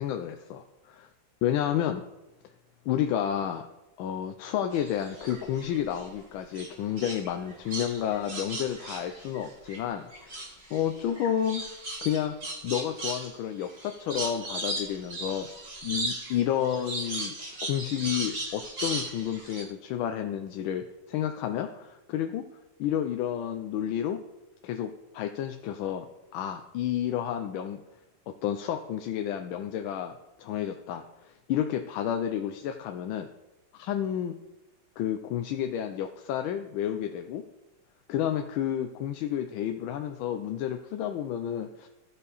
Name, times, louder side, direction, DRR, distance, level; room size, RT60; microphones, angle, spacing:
voice 1, 0.0-1.1 1.4-2.0 2.9-3.7 4.0-11.6 12.0-12.4 12.6-15.5 15.8-17.3 17.7-22.4 22.8-24.2 24.6-26.0 26.3-27.8 28.3-30.1 30.4-33.3 33.7-34.4 35.0-37.4 38.1-41.9, left 10 dB, 80° left, 6 dB, 1.3 m, -31 dB
sound 1, 4.7-6.1 6.5-9.8 10.1-19.6, right 2 dB, 30° right, 1.7 m, -37 dB
14.0 x 5.6 x 4.1 m, 1.0 s
omnidirectional pair, 2.2 m